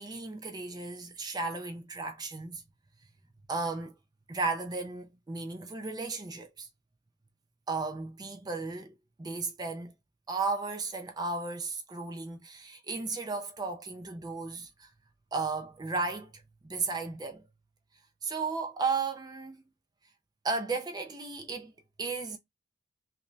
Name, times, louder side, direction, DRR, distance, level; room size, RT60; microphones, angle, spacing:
voice 1, 0.0-2.6 3.5-3.9 4.3-6.7 7.7-9.9 10.3-14.9 15.3-16.3 16.6-17.5 18.2-19.6 20.4-21.7 22.0-22.4, right 4 dB, 20° right, 0.4 m, -34 dB
3.3 x 2.6 x 3.0 m
head